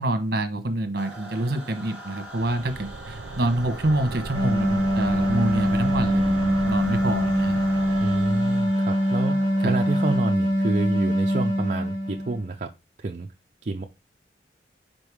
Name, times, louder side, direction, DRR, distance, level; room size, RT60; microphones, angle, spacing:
voice 1, 0.0-7.6 9.6-9.8, right 1 dB, 60° right, 1.2 m, -27 dB
sound 1, 1.0-10.2, right 2 dB, 5° right, 1.6 m, -41 dB
sound 2, 2.3-8.8, right 3 dB, 90° right, 0.6 m, -36 dB
sound 3, 4.3-12.5, equal, 30° left, 3.2 m, -23 dB
voice 2, 8.0-12.7 13.0-13.3 13.6-13.9, right 3 dB, 40° right, 0.5 m, -29 dB
5.3 x 4.5 x 4.8 m
head